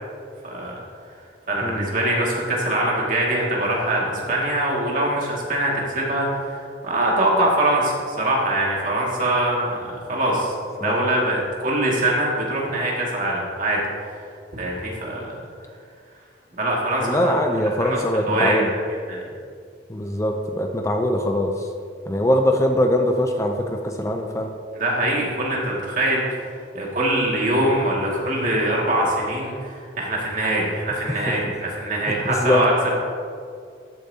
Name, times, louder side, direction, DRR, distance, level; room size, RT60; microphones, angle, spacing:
voice 1, 0.4-0.8 1.5-13.8 14.1-15.4 16.6-17.3 17.8-18.0 18.3-18.6 19.1-19.3 24.8-26.4 26.7-33.0, right 1 dB, 45° right, -3 dB, 2.2 m, -23 dB
voice 2, 17.0-18.7 19.9-21.7 22.1-24.5 32.1-32.6, left 1 dB, 15° left, 3 dB, 0.5 m, -22 dB
13.5 x 8.4 x 2.8 m, 2.3 s
head